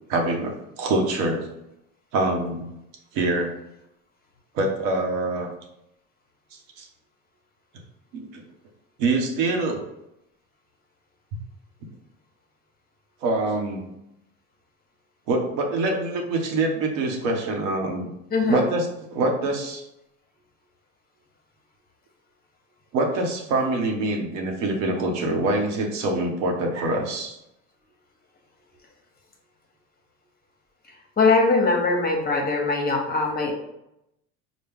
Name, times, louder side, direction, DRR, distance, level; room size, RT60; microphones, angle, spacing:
voice 1, 0.1-1.5 2.1-2.7 3.1-3.5 4.5-5.5 6.8-6.9 8.1-8.4 9.0-9.8 13.2-13.9 15.3-18.1 18.5-18.8 19.1-19.8 22.9-27.4, right 2 dB, 65° right, 2 dB, 1.0 m, -25 dB
voice 2, 18.3-18.6 31.2-33.5, left 3 dB, 20° left, 0 dB, 0.9 m, -21 dB
4.4 x 2.2 x 3.6 m, 0.84 s
hypercardioid pair, 90°, 41 cm